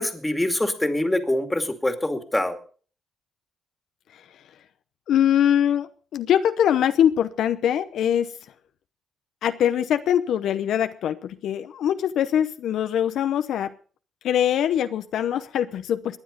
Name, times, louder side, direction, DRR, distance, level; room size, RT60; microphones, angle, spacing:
voice 1, 0.0-2.6, left 1 dB, 10° left, 8 dB, 2.3 m, -24 dB
voice 2, 5.1-8.3 9.4-13.7 14.2-16.2, left 10 dB, 75° left, 10 dB, 0.8 m, -23 dB
19.0 x 10.5 x 5.2 m, 0.42 s
cardioid pair, 90°, 0 cm